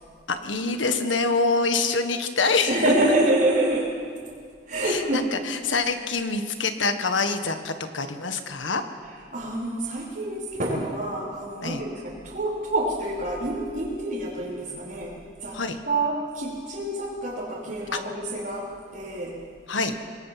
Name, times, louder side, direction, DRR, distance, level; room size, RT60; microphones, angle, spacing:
voice 1, 0.3-2.8 4.8-8.8 11.6-11.8 15.5-15.8 17.9-18.0 19.7-19.9, left 4 dB, 85° left, 8 dB, 1.6 m, -25 dB
voice 2, 2.7-4.0 4.7-5.4 9.3-15.6 15.9-19.4, right 1 dB, 50° right, -8 dB, 4.0 m, -27 dB
26.0 x 19.5 x 5.9 m, 2.1 s
head